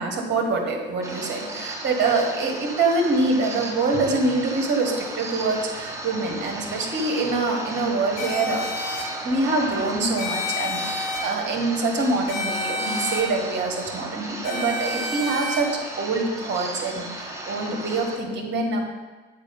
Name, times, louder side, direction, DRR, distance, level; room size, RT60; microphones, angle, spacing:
voice 1, 0.0-8.7 9.2-18.8, right 3 dB, 30° right, 1 dB, 1.7 m, -25 dB
sound 1, 1.0-18.2, right 2 dB, 10° right, 1.0 m, -35 dB
sound 2, 8.2-9.0 10.2-11.2 12.3-13.2 14.4-15.6, left 2 dB, 50° left, 1.9 m, -29 dB
7.4 x 4.9 x 5.3 m, 1.3 s
figure-of-eight pair, 70°, 34 cm